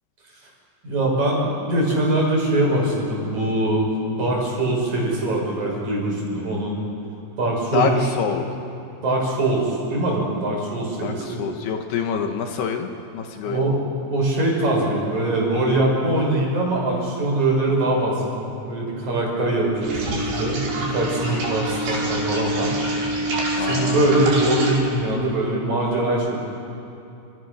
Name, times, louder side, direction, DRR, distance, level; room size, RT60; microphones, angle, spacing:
voice 1, 0.8-3.9 4.2-6.8 7.4-8.1 9.0-11.4 13.4-13.8 14.1-22.8 23.7-26.4, right 2 dB, 40° right, -2 dB, 7.0 m, -22 dB
voice 2, 11.0-13.6 23.6-24.3, left 7 dB, 70° left, 4 dB, 3.2 m, -26 dB
sound 1, 19.8-24.8, right 1 dB, 70° right, 6.9 m, -25 dB
29.5 x 27.0 x 6.5 m, 2.8 s
omnidirectional pair, 5.0 m